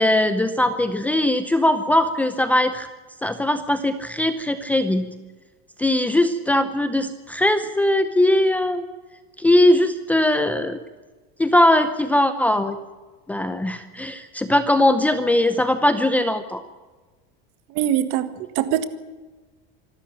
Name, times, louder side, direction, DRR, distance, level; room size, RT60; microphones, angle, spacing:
voice 1, 0.0-2.9 3.2-5.1 5.8-8.8 9.4-10.8 11.4-12.8 13.3-16.6, left 1 dB, 5° left, 10 dB, 0.7 m, -20 dB
voice 2, 17.7-18.9, right 11 dB, 45° right, 12 dB, 1.7 m, -23 dB
26.0 x 13.0 x 8.8 m, 1.3 s
supercardioid pair, 170°, 30 cm